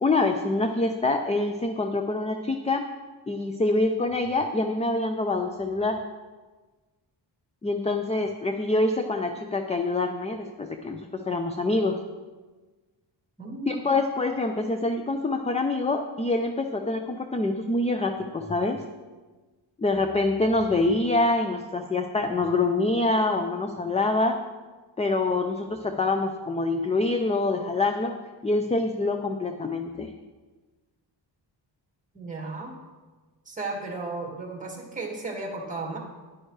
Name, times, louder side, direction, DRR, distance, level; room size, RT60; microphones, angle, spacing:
voice 1, 0.0-2.8 3.3-6.0 7.6-11.0 11.3-12.0 13.7-18.8 19.8-24.4 25.0-28.1 28.4-30.1, left 2 dB, 15° left, 5 dB, 0.4 m, -25 dB
voice 2, 13.4-14.0 32.1-32.7 33.5-36.0, right 3 dB, 15° right, 0 dB, 1.8 m, -34 dB
11.0 x 9.8 x 3.2 m, 1.3 s
wide cardioid pair, 160°, 46 cm